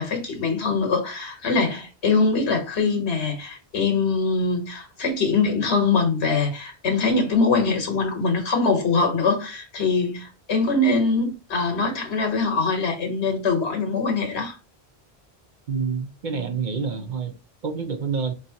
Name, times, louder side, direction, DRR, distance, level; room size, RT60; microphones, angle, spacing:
voice 1, 0.0-14.6, left 4 dB, 90° left, 1.6 m, -23 dB
voice 2, 15.7-17.3 17.6-18.3, right 5 dB, 55° right, 0.7 m, -27 dB
5.1 x 3.1 x 2.8 m
omnidirectional pair, 1.1 m